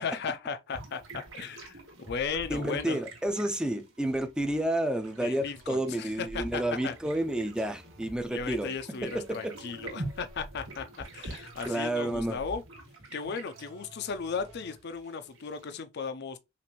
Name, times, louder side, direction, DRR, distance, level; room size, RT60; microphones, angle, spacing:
voice 1, 0.0-1.8 2.1-3.0 5.2-6.9 8.3-12.6 13.1-16.4, left 5 dB, 55° left, 0.5 m, -36 dB
sound 1, 0.7-15.8, right 2 dB, 80° right, 2.1 m, -45 dB
voice 2, 2.5-8.7 9.0-9.5 11.6-12.4, right 1 dB, 5° right, 0.4 m, -30 dB
sound 2, 4.4-5.9 6.7-8.2 9.1-10.6 11.4-12.8 13.5-15.0, equal, 45° right, 1.2 m, -56 dB
5.7 x 2.5 x 2.9 m
head